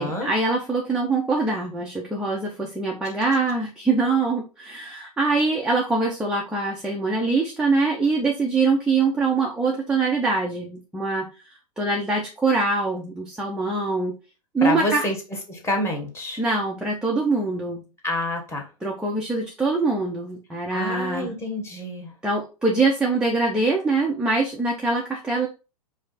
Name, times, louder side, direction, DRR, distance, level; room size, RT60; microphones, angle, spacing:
voice 1, 0.0-11.3 11.8-14.1 14.5-15.1 16.4-17.8 18.8-21.3 22.2-25.5, right 3 dB, 5° right, -2 dB, 0.6 m, -23 dB
voice 2, 14.6-16.4 18.0-18.7 20.7-22.1, left 1 dB, 15° left, 2 dB, 1.3 m, -28 dB
4.9 x 2.0 x 4.1 m, 0.31 s
figure-of-eight pair, 105°, 19 cm